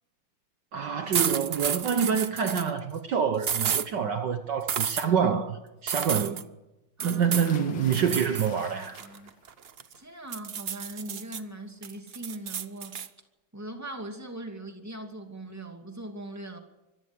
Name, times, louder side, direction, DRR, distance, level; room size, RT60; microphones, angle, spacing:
voice 1, 0.7-6.4 7.0-8.9, right 7 dB, 60° right, 1.6 m, -27 dB
sound 1, 1.1-2.7 3.4-3.9 4.7-5.1 5.9-6.4 7.0-7.5 7.9-8.5 8.8-9.9 10.3-11.4 11.8-13.1, right 7 dB, 90° right, 0.5 m, -31 dB
voice 2, 7.0-7.4 7.8-8.1 8.5-8.6 9.0-9.3 10.0-13.0 13.5-16.6, right 1 dB, 10° right, 2.4 m, -40 dB
sound 2, 7.4-9.4 9.8-10.3 11.7-11.8 12.2-12.3, left 6 dB, 65° left, 2.3 m, -46 dB
25.0 x 14.5 x 8.1 m
omnidirectional pair, 2.3 m